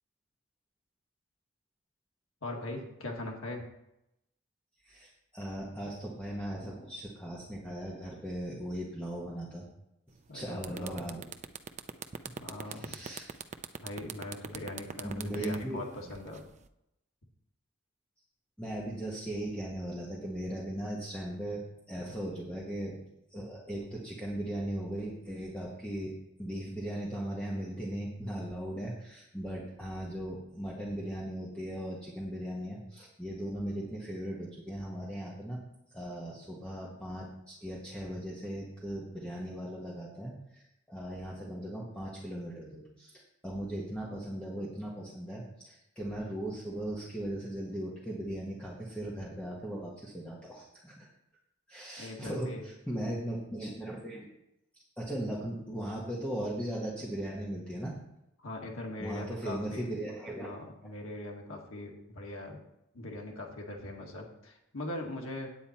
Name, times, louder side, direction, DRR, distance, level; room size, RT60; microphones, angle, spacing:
voice 1, 2.4-3.6 10.3-11.0 12.3-13.0 13.8-16.4 22.0-22.1 52.0-52.7 58.4-59.9 60.4-62.6 62.9-65.5, left 2 dB, 85° left, 0 dB, 1.9 m, -41 dB
voice 2, 4.8-9.7 10.3-11.2 12.6-13.3 15.0-15.9 18.6-21.6 21.9-22.9 23.3-35.6 35.9-51.1 51.7-54.3 55.0-58.0 59.0-60.6, right 1 dB, 5° left, -5 dB, 1.5 m, -38 dB
sound 1, 10.1-10.3 10.6-16.7, right 6 dB, 35° right, 0.4 m, -42 dB
9.3 x 8.6 x 4.4 m, 0.83 s
head